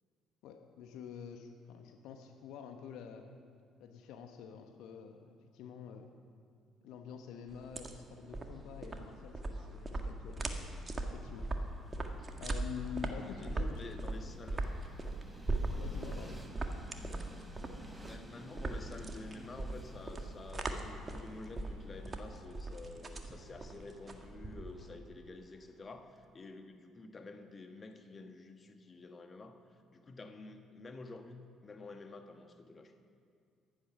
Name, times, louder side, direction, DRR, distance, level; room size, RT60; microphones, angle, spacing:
voice 1, 0.4-3.3 3.8-6.1 6.8-10.7 11.1-11.5 12.4-13.9 15.8-16.4, left 7 dB, 65° left, 5 dB, 1.1 m, -47 dB
sound 1, 7.5-25.0, right 2 dB, 30° right, 1.7 m, -40 dB
Train, 10.5-26.3, right 1 dB, 15° right, 1.9 m, -57 dB
voice 2, 13.2-14.6 18.0-29.6 29.9-32.9, left 3 dB, 35° left, 6 dB, 1.5 m, -50 dB
sound 2, 13.9-24.5, right 1 dB, 90° right, 2.2 m, -61 dB
16.0 x 11.5 x 5.9 m, 2.2 s
figure-of-eight pair, 50°, 0 cm